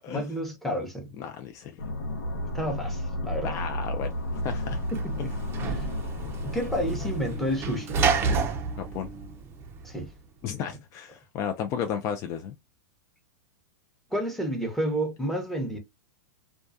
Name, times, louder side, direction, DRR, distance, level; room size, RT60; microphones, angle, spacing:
voice 1, 0.0-1.1 2.5-3.6 4.9-5.3 5.6-5.9 6.4-8.0 9.8-10.1 14.1-15.8, equal, ahead, 0.7 m, -30 dB
voice 2, 1.2-1.8 3.4-4.1 4.4-4.8 5.2-5.3 8.8-9.1 10.4-12.6, left 8 dB, 35° left, 0.3 m, -33 dB
sound 1, 1.8-8.3, left 1 dB, 85° left, 0.9 m, -33 dB
Sliding door / Slam, 4.3-10.1, right 5 dB, 25° right, 0.5 m, -30 dB
2.3 x 2.2 x 2.5 m
hypercardioid pair, 125°, 10 cm